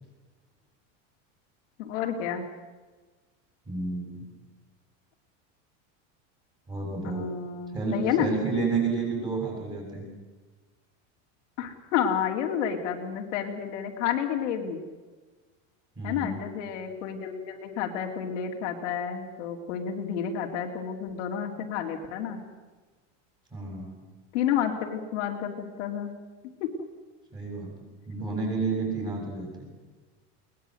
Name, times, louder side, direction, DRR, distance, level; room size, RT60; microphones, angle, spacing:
voice 1, 1.8-2.4 7.0-8.3 11.6-14.8 16.0-22.4 24.3-26.1 26.6-26.7, left 8 dB, 70° left, 2 dB, 3.1 m, -30 dB
voice 2, 3.7-4.3 6.7-7.3 7.7-10.0 16.0-16.4 23.5-24.0 27.3-27.7 28.1-29.7, right 4 dB, 10° right, -1 dB, 7.1 m, -30 dB
21.5 x 20.0 x 7.9 m, 1.3 s
supercardioid pair, 170°, 37 cm